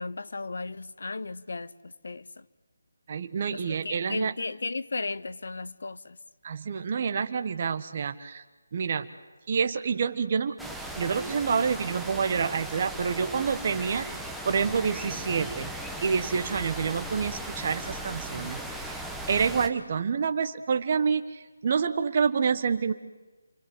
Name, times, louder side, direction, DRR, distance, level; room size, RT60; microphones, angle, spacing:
voice 1, 0.0-2.5 3.5-6.2, left 3 dB, 65° left, 1.0 m, -35 dB
voice 2, 3.1-4.3 6.4-8.4 8.7-9.1 9.5-10.6 11.0-14.1 14.4-15.7 16.0-19.0 19.3-22.9, right 6 dB, 40° right, 1.3 m, -28 dB
sound 1, 10.6-19.7, right 1 dB, ahead, 1.4 m, -37 dB
29.0 x 24.5 x 7.9 m
figure-of-eight pair, 160°, 0 cm